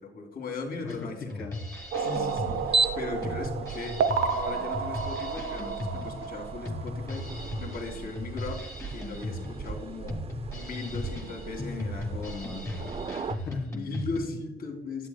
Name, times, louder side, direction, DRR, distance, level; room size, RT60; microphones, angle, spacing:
voice 1, 0.0-1.4 2.0-4.0 4.3-8.6 8.9-10.2 10.5-12.4 13.6-15.1, left 3 dB, 50° left, 2 dB, 2.2 m, -38 dB
voice 2, 0.8-1.6 12.1-13.7, left 5 dB, 80° left, -3 dB, 1.5 m, -40 dB
Drum kit, 0.9-14.2, left 1 dB, 15° left, 1.6 m, -37 dB
sound 1, 1.7-13.4, right 4 dB, 30° right, 0.5 m, -36 dB
sound 2, 1.9-7.3, right 5 dB, 80° right, 0.7 m, -31 dB
10.5 x 7.5 x 2.3 m, 1.0 s
cardioid pair, 90°, 20 cm